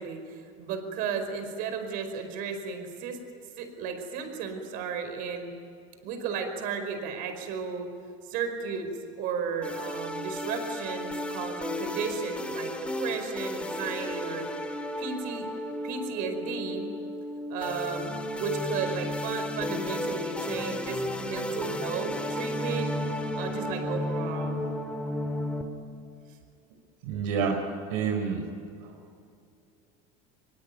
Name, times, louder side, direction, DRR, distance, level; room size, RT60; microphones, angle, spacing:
voice 1, 0.0-3.2 3.6-5.5 6.0-7.9 8.3-8.9 9.2-14.5 15.0-15.5 15.8-16.9 17.5-18.1 18.4-22.9 23.3-24.6, right 6 dB, 60° right, 7 dB, 4.9 m, -34 dB
sound 1, 9.6-25.6, left 1 dB, 5° left, 2.3 m, -33 dB
voice 2, 27.0-27.6 27.9-28.4, right 6 dB, 80° right, 4 dB, 4.0 m, -27 dB
25.0 x 22.5 x 9.6 m, 2.5 s
cardioid pair, 145°, 17 cm